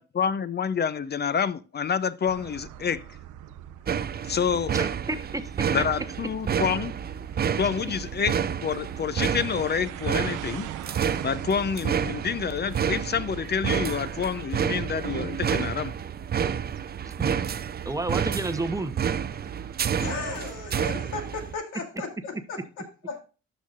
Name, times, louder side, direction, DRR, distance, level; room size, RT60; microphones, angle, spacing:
voice 1, 0.0-3.0 4.3-4.7 5.7-6.9 7.6-10.7 11.2-16.0, left 7 dB, 35° left, 0.5 m, -28 dB
sound 1, 2.2-20.3, right 12 dB, 85° right, 0.6 m, -44 dB
sound 2, 3.9-21.5, right 8 dB, 30° right, 0.5 m, -30 dB
voice 2, 4.7-5.6 17.0-17.3 17.9-18.9, right 2 dB, 10° right, 0.8 m, -31 dB
voice 3, 20.0-23.2, left 4 dB, 85° left, 2.2 m, -36 dB
13.0 x 5.6 x 2.4 m
cardioid pair, 90°, 30 cm